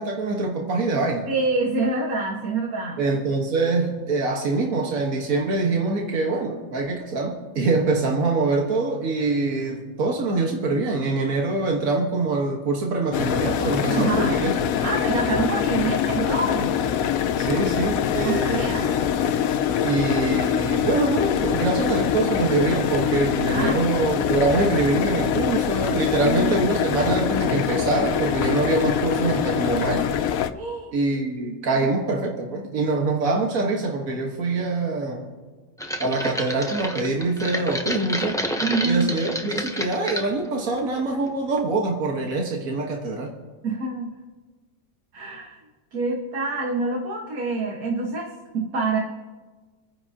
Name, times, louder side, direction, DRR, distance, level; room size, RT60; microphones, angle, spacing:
voice 1, 0.0-1.3 3.0-14.5 17.4-18.9 19.8-30.1 30.9-35.3 36.0-38.4 38.8-43.3, right 3 dB, 70° right, 0 dB, 1.9 m, -24 dB
voice 2, 1.3-3.0 13.9-14.3 14.8-16.8 18.2-19.0 23.5-24.7 26.2-26.6 30.5-30.9 31.8-31.9 38.6-39.1 43.6-44.1 45.1-45.6 45.9-49.0, right 3 dB, 90° right, -1 dB, 2.0 m, -26 dB
sound 1, 13.1-30.5, left 9 dB, 75° left, 1.1 m, -24 dB
sound 2, 35.8-40.3 40.8-41.3 41.6-41.7, equal, 5° left, 0.7 m, -29 dB
28.5 x 9.9 x 2.9 m, 1.3 s
omnidirectional pair, 1.5 m